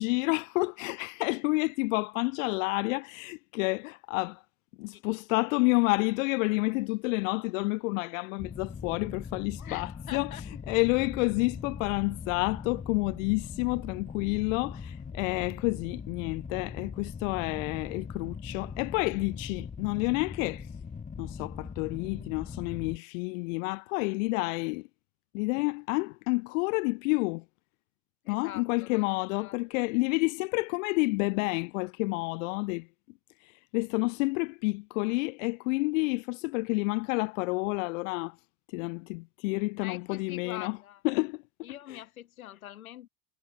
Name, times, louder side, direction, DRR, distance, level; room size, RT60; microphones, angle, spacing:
voice 1, 0.0-4.4 4.8-10.4 10.7-20.7 21.2-24.9 25.3-27.4 28.3-32.9 33.4-38.3 38.7-40.8 41.0-41.4 41.9-42.0, left 27 dB, 70° left, 0.5 m, -29 dB
sound 1, 8.4-23.0, left 5 dB, 20° left, 1.4 m, -41 dB
voice 2, 9.6-10.4 28.2-29.8 39.8-41.0 41.6-43.1, left 12 dB, 90° left, 1.9 m, -44 dB
hypercardioid pair, 85°, 41 cm